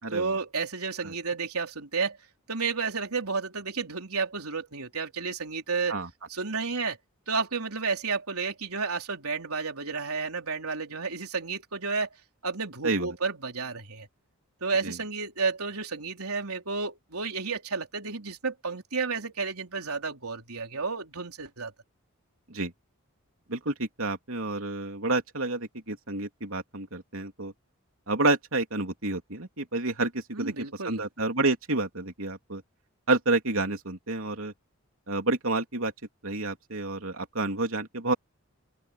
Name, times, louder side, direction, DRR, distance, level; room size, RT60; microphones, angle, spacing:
voice 1, 0.1-2.2 2.5-6.0 6.3-7.0 7.3-12.1 12.4-14.1 14.6-21.7 30.3-31.0, right 4 dB, 85° right, 3.9 m, -31 dB
voice 2, 12.8-13.2 14.8-15.0 22.5-22.7 23.5-27.5 28.1-32.6 33.1-34.5 35.1-35.9 36.2-38.1, right 2 dB, 70° right, 3.4 m, -29 dB
open air
head